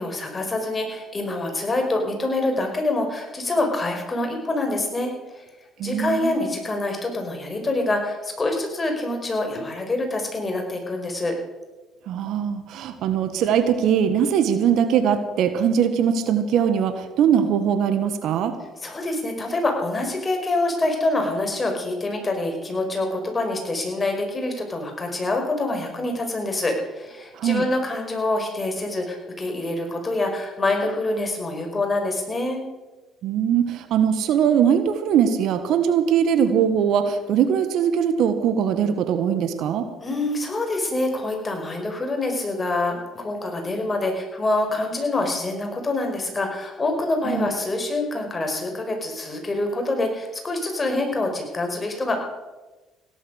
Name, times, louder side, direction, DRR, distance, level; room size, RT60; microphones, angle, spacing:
voice 1, 0.0-5.4 5.8-11.3 18.8-32.6 40.0-52.2, left 2 dB, 25° left, 3 dB, 5.3 m, -26 dB
voice 2, 5.8-6.3 12.1-18.5 27.3-27.6 33.2-39.9 47.2-47.5, right 8 dB, 65° right, 10 dB, 1.6 m, -21 dB
17.0 x 11.5 x 6.6 m, 1.2 s
hypercardioid pair, 65°, 0 cm